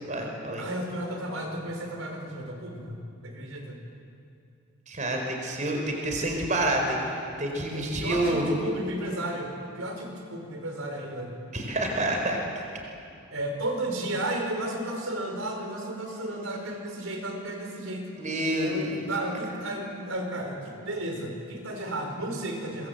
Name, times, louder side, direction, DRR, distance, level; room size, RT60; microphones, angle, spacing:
voice 1, 0.1-0.6 4.9-8.4 11.5-12.4 18.2-19.1, right 1 dB, 35° right, 2 dB, 4.5 m, -28 dB
voice 2, 0.6-3.8 7.7-11.3 13.3-18.1 18.6-22.9, right 1 dB, 75° right, 3 dB, 4.8 m, -33 dB
24.5 x 24.0 x 8.0 m, 2.6 s
head